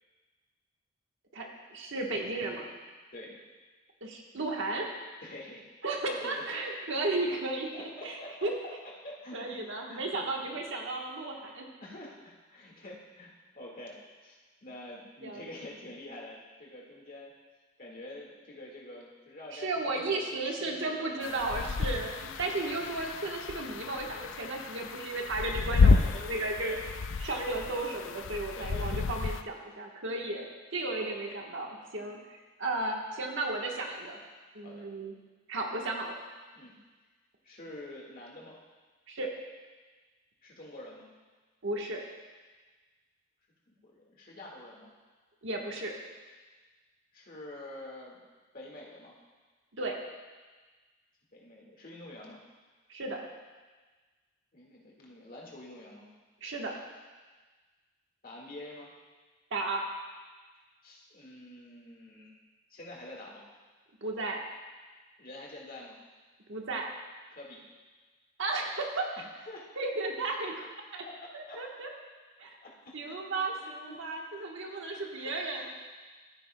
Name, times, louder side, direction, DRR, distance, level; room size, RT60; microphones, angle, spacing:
voice 1, 1.3-2.7 4.0-4.9 5.8-8.2 8.4-8.5 9.3-11.7 15.2-15.4 19.5-25.9 26.2-26.8 27.2-32.2 32.6-34.2 34.5-35.1 35.5-36.2 39.1-39.3 41.6-42.0 45.4-45.9 49.8-50.0 52.9-53.2 56.4-56.7 59.5-59.8 64.0-64.4 66.5-66.9 68.4-69.1 69.8-70.7 70.9-71.0 71.3-71.9 72.4-72.5 72.9-75.7, right 2 dB, 65° right, 0 dB, 1.3 m, -34 dB
voice 2, 5.2-5.7 6.1-6.4 7.4-8.5 9.0-9.6 9.9-10.6 11.8-17.3 17.8-21.6 25.8-26.8 28.6-29.1 31.0-31.4 34.6-34.9 36.5-36.8 37.4-38.6 40.4-41.1 43.7-44.9 47.1-48.2 48.5-49.2 51.3-52.4 54.5-56.1 58.2-58.9 60.8-62.4 62.7-63.5 65.2-66.0 67.3-67.6 69.2-69.7 71.0-71.2 71.5-71.6 72.6-74.2 74.7-75.7, left 1 dB, 45° left, -3 dB, 1.8 m, -47 dB
sound 1, 21.2-29.4, left 4 dB, 65° left, 0.4 m, -30 dB
14.0 x 9.2 x 2.2 m, 1.3 s
head